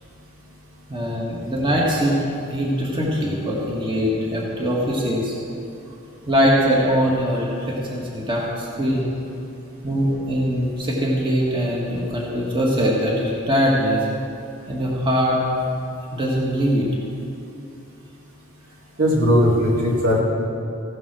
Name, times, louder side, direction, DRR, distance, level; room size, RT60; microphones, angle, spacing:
voice 1, 0.9-2.2 2.5-5.4 6.3-9.1 9.8-14.1 14.7-15.4 16.1-16.9, equal, 25° right, -4 dB, 1.9 m, -22 dB
voice 2, 19.0-20.2, equal, 70° right, -3 dB, 2.7 m, -18 dB
16.0 x 7.8 x 6.2 m, 2.6 s
head